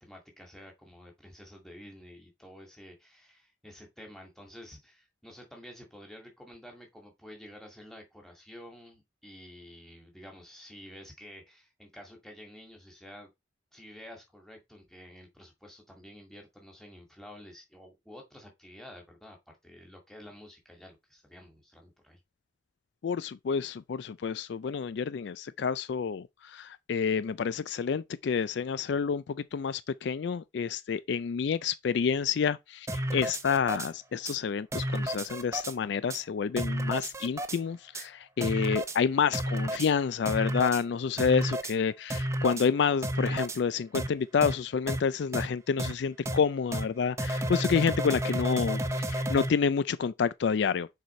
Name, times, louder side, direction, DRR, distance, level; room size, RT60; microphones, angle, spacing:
voice 1, 0.0-13.3 13.7-19.4 19.6-22.2, left 1 dB, ahead, 2.0 m, -50 dB
voice 2, 23.0-26.3 26.5-49.0 49.3-50.9, left 6 dB, 60° left, 0.3 m, -29 dB
sound 1, 32.9-33.9 34.3-34.4 34.7-35.7 36.1-36.2 36.6-37.6 37.9-38.1 38.4-39.0 39.3-39.9 40.3-40.8 41.2-41.7 42.1-42.7 43.0-43.6 43.9-44.1 44.4-44.5 44.9-45.0 45.3-45.5 45.8-45.9 46.3-46.4 46.7-46.9 47.2-49.5, right 1 dB, 15° right, 0.6 m, -31 dB
6.6 x 4.7 x 4.2 m
head